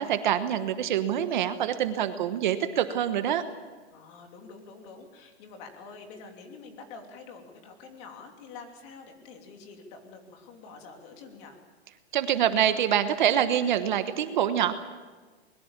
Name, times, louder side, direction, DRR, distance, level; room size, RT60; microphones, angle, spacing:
voice 1, 0.0-3.4 12.1-14.8, right 10 dB, 45° right, 10 dB, 1.2 m, -25 dB
voice 2, 3.9-11.6, left 4 dB, 25° left, 4 dB, 3.1 m, -47 dB
23.5 x 21.5 x 7.4 m, 1.4 s
hypercardioid pair, 170°, 34 cm